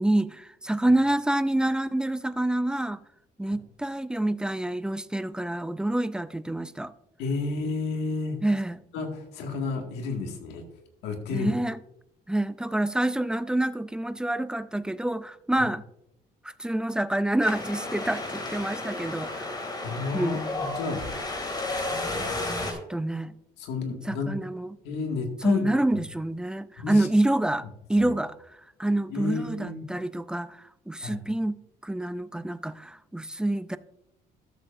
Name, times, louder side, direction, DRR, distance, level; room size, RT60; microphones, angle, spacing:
voice 1, 0.0-3.0 3.4-6.9 8.4-8.8 11.3-11.8 12.3-15.8 16.4-19.5 20.1-20.4 22.7-23.3 24.0-24.8 25.4-28.4 28.8-31.6 31.8-33.8, right 1 dB, 5° right, 0.4 m, -27 dB
voice 2, 7.2-8.4 8.9-10.6 11.0-11.5 19.8-21.0 23.6-24.3 24.8-25.7 26.8-27.1 28.0-28.1 29.1-29.9 31.0-31.2, left 4 dB, 90° left, 1.9 m, -31 dB
Wind, 17.4-22.7, left 2 dB, 25° left, 2.5 m, -32 dB
13.0 x 7.3 x 2.6 m
cardioid pair, 110°, 17 cm